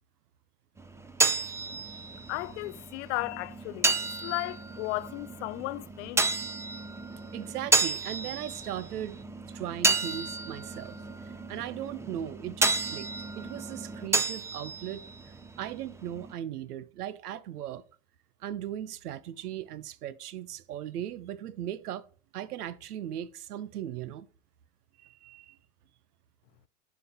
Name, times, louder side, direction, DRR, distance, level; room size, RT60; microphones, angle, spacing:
sound 1, 0.8-16.3, right 3 dB, 5° right, 0.6 m, -32 dB
voice 1, 2.3-3.9 4.2-6.3, left 19 dB, 50° left, 0.5 m, -34 dB
voice 2, 7.3-9.2 9.5-11.0 11.3-13.1 13.4-15.1 15.6-17.8 18.4-22.0 22.3-24.3 25.0-25.6, right 11 dB, 75° right, 0.8 m, -38 dB
11.0 x 4.7 x 3.6 m
hypercardioid pair, 90°, 46 cm